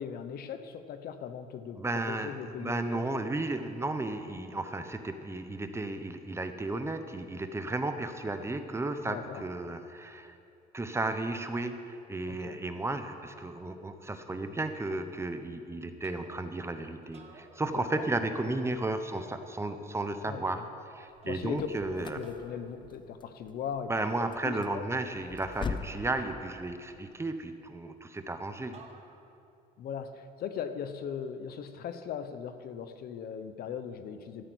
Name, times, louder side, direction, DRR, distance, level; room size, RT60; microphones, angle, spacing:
voice 1, 0.0-1.8 2.1-3.2 9.0-9.4 12.3-12.6 17.7-18.1 20.3-20.6 21.2-21.7 22.0-24.8 29.8-34.4, left 7 dB, 65° left, 10 dB, 0.9 m, -39 dB
voice 2, 1.8-10.3 10.7-20.7 20.9-22.3 23.9-28.8, right 2 dB, 15° right, 8 dB, 0.9 m, -34 dB
sound 1, 16.0-16.7 17.0-18.2 19.2-20.1 21.2-21.7 22.2-22.7 24.0-24.9 26.2-27.2 28.7-29.5, right 4 dB, 40° right, 1.5 m, -56 dB
sound 2, 21.1-26.1, left 5 dB, 30° left, 0.7 m, -41 dB
13.5 x 8.9 x 8.1 m, 2.6 s
cardioid pair, 110°, 17 cm